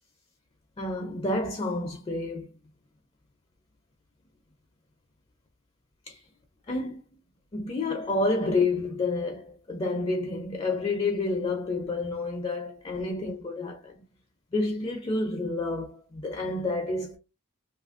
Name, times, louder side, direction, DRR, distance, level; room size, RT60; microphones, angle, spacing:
voice 1, 0.8-2.5 6.1-6.2 6.7-7.0 7.5-13.9 14.5-17.2, left 2 dB, 25° left, 0.4 m, -29 dB
2.9 x 2.4 x 2.4 m
head